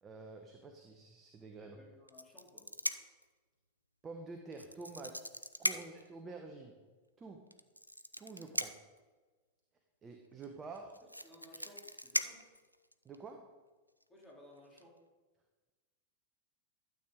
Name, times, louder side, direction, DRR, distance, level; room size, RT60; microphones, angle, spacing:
voice 1, 0.0-1.8 4.0-5.3 5.6-6.8 7.2-7.5 8.2-8.8 10.0-11.0 13.0-13.5, right 3 dB, 20° right, 4 dB, 0.9 m, -48 dB
voice 2, 1.6-2.7 5.7-5.8 11.2-12.5 14.1-15.0, left 1 dB, 15° left, -3 dB, 3.2 m, -58 dB
sound 1, 2.1-3.2 4.5-6.1 7.5-9.0 10.4-10.5 10.7-13.2 14.0-14.2 14.6-14.8, equal, 90° right, 0.4 m, -38 dB
12.0 x 7.9 x 3.8 m, 1.3 s
figure-of-eight pair, 90°, 0 cm